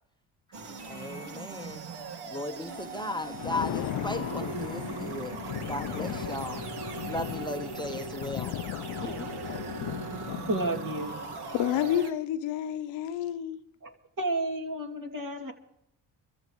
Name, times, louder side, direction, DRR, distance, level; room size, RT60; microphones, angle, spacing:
sound 1, 0.5-12.1, right 4 dB, 60° right, 1.8 m, -39 dB
voice 1, 0.9-1.8 2.3-5.3 5.7-6.6 7.0-8.5 9.0-9.3, left 1 dB, 10° left, 0.9 m, -36 dB
Thunder, 3.1-10.8, left 13 dB, 55° left, 0.6 m, -37 dB
voice 2, 10.5-11.1 13.8-15.5, right 2 dB, 45° right, 2.5 m, -31 dB
voice 3, 11.5-13.6, left 11 dB, 80° left, 1.0 m, -29 dB
24.5 x 14.5 x 3.1 m
supercardioid pair, 60°, 45 cm